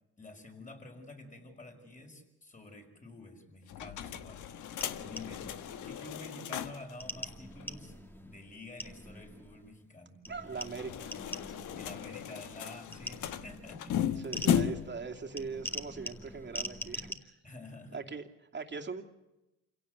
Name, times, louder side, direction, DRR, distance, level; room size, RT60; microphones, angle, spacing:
voice 1, 0.2-4.5 5.1-5.5 5.8-8.0 8.2-10.2 11.7-14.3 17.4-18.0, left 2 dB, 25° left, 4 dB, 5.6 m, -49 dB
sound 1, 3.7-6.9 7.3-7.4 7.6-7.7 10.5-15.0, left 9 dB, 80° left, 1.3 m, -35 dB
sound 2, 4.8-6.2 7.0-9.8 10.2-12.4 12.9-17.1, equal, 5° left, 2.1 m, -44 dB
voice 2, 10.3-11.1 14.2-17.3 17.9-18.2 18.5-19.0, right 5 dB, 35° right, 3 dB, 2.7 m, -40 dB
27.5 x 17.0 x 8.1 m, 0.98 s
cardioid pair, 90°, 30 cm